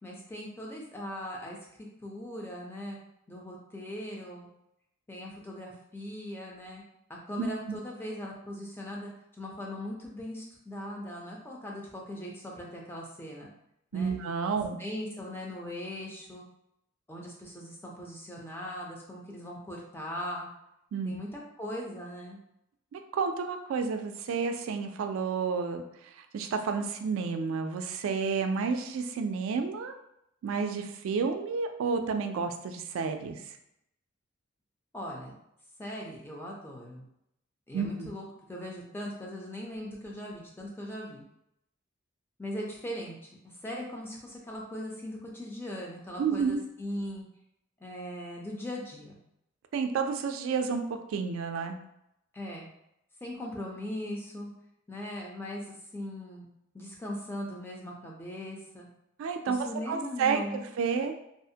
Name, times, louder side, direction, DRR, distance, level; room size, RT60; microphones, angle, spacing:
voice 1, 0.0-1.6 2.0-3.0 3.3-4.5 5.1-6.8 7.1-9.1 9.4-13.5 13.9-14.1 14.8-16.4 17.1-20.5 21.0-22.4 34.9-35.3 35.8-37.0 37.7-38.2 38.5-41.2 42.4-47.3 47.8-49.2 52.3-52.7 53.2-54.5 54.9-56.5 56.7-58.9 59.5-60.6, left 1 dB, 10° left, -2 dB, 0.4 m, -39 dB
voice 2, 7.4-7.8 13.9-14.8 20.9-21.2 22.9-29.9 30.4-33.4 37.7-38.1 46.2-46.6 49.7-50.8 51.1-51.8 59.2-61.1, right 5 dB, 80° right, 7 dB, 0.3 m, -31 dB
2.5 x 2.1 x 2.6 m, 0.79 s
head